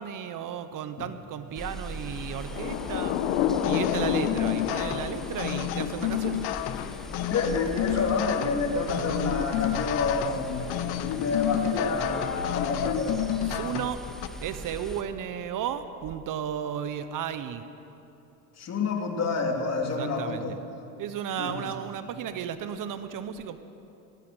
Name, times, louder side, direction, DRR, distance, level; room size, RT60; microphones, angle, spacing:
voice 1, 0.0-3.1 3.7-6.4 13.4-14.0 14.4-17.6 19.8-20.6 21.0-23.6, right 9 dB, 50° right, 10 dB, 1.2 m, -34 dB
sound 1, 1.5-15.0, equal, ahead, 1.7 m, -40 dB
Thunder / Rain, 2.2-12.8, left 9 dB, 85° left, 1.3 m, -33 dB
sound 2, 3.6-14.3, left 13 dB, 65° left, 0.9 m, -30 dB
voice 2, 7.2-10.7 11.2-13.6 18.6-20.6 21.4-21.7, left 4 dB, 40° left, 2 dB, 3.3 m, -29 dB
19.0 x 18.0 x 8.0 m, 2.9 s
supercardioid pair, 110°, 41 cm